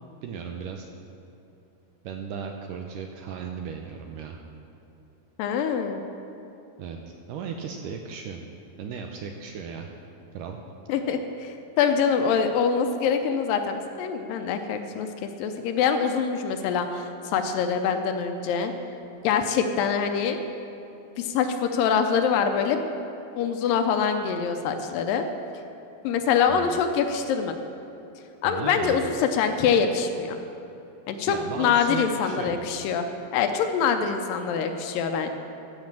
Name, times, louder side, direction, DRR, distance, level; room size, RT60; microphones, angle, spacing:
voice 1, 0.2-0.9 2.0-4.4 6.8-8.4 8.8-9.9 10.3-10.6 10.9-11.0 26.5-26.8 28.4-29.1 31.3-32.7, right 6 dB, 80° right, 3 dB, 1.9 m, -36 dB
voice 2, 5.4-6.0 10.9-18.7 19.2-20.4 21.2-22.8 23.4-25.3 26.0-27.5 28.4-30.4 31.1-33.1 33.3-35.3, left 6 dB, 80° left, 6 dB, 2.2 m, -24 dB
13.5 x 5.4 x 7.4 m, 2.9 s
omnidirectional pair, 4.2 m